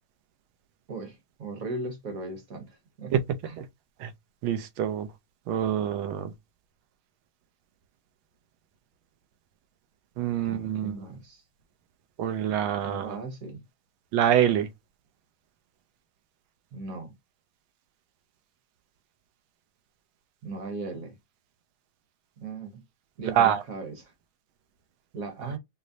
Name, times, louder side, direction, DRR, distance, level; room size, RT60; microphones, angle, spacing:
voice 1, 0.9-3.1 3.4-3.6 10.4-11.4 12.8-13.6 16.7-17.1 20.4-21.2 22.4-22.8 23.2-24.1 25.1-25.6, right 3 dB, 50° right, 1.2 m, -37 dB
voice 2, 4.4-5.1 5.5-6.3 10.2-10.9 12.2-13.2 14.1-14.7 23.4-23.6, right 10 dB, 85° right, 1.4 m, -25 dB
5.0 x 2.0 x 2.6 m
omnidirectional pair, 2.1 m